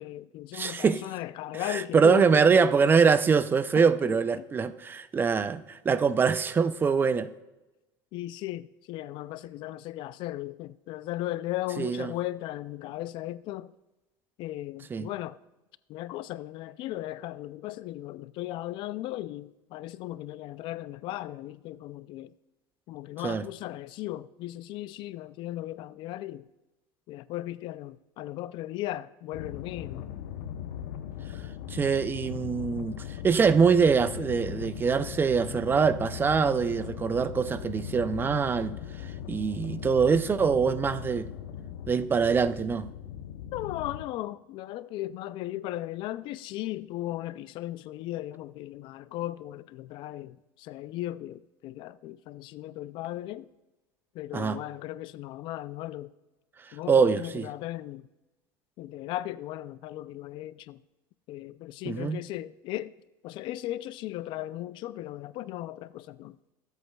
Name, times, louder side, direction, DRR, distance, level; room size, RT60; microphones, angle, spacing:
voice 1, 0.0-2.7 3.8-4.4 8.1-13.7 14.4-15.4 15.9-22.3 22.9-26.5 27.1-30.1 43.5-53.5 54.1-56.1 56.7-58.0 58.8-60.8 61.3-62.9 63.2-66.4, left 15 dB, 55° left, 0.4 m, -37 dB
voice 2, 0.5-1.0 1.7-7.3 11.8-12.1 14.9-15.1 23.2-23.4 31.7-33.0 33.2-38.8 39.3-41.3 41.9-42.9 54.3-54.6 56.9-57.5 61.9-62.2, right 5 dB, 20° right, 0.4 m, -24 dB
sound 1, 29.3-44.0, left 10 dB, 80° left, 0.8 m, -39 dB
22.0 x 8.2 x 2.3 m
supercardioid pair, 130°, 10 cm